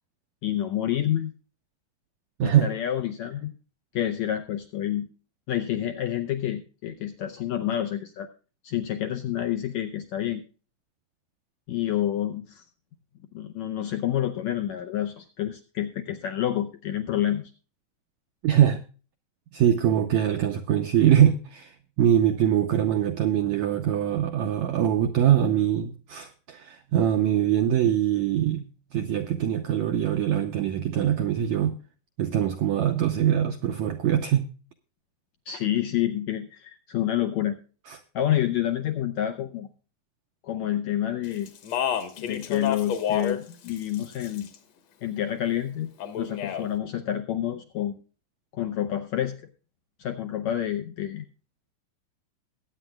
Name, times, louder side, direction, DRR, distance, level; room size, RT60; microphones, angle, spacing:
voice 1, 0.4-1.3 2.4-3.5 3.9-5.1 5.5-8.3 8.6-10.4 11.7-12.6 13.3-17.5 35.5-37.6 38.1-39.7 40.4-41.5 42.2-44.5 45.0-45.9 46.2-47.9 48.5-49.4 50.0-51.2, left 11 dB, 75° left, 6 dB, 1.7 m, -28 dB
voice 2, 2.4-2.7 18.4-18.8 19.5-28.6 28.9-31.8 32.2-34.5 37.9-38.0, right 10 dB, 80° right, 7 dB, 1.6 m, -23 dB
Speech, 41.5-43.4 43.7-44.6 46.0-46.7, left 8 dB, 60° left, 2.1 m, -29 dB
21.0 x 8.8 x 2.3 m, 0.36 s
omnidirectional pair, 4.1 m